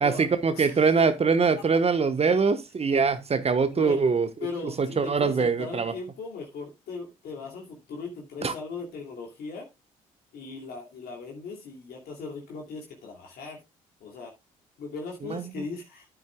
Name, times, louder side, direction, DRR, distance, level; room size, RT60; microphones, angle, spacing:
voice 1, 0.0-4.3 4.6-5.9 8.4-8.5 15.3-15.4, right 5 dB, 35° right, 1.2 m, -23 dB
voice 2, 0.5-1.0 3.7-4.0 4.4-9.7 10.3-13.6 14.0-14.3 14.8-16.1, left 4 dB, 65° left, 2.6 m, -38 dB
10.0 x 9.3 x 2.3 m
hypercardioid pair, 50°, 17 cm